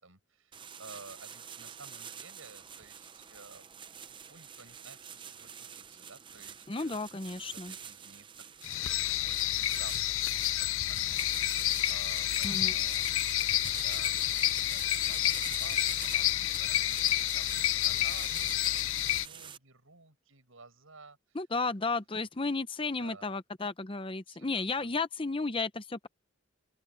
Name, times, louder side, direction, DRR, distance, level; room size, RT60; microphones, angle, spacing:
voice 1, 0.0-7.0 7.5-14.1 14.4-21.7 23.0-23.3 24.3-24.9, right 3 dB, 75° right, 6.4 m, -54 dB
sound 1, 0.5-19.6, right 7 dB, 25° right, 0.6 m, -46 dB
voice 2, 6.7-7.7 12.4-12.7 21.3-26.1, left 3 dB, 25° left, 0.7 m, -33 dB
sound 2, 8.6-19.3, left 14 dB, 70° left, 0.5 m, -29 dB
open air
head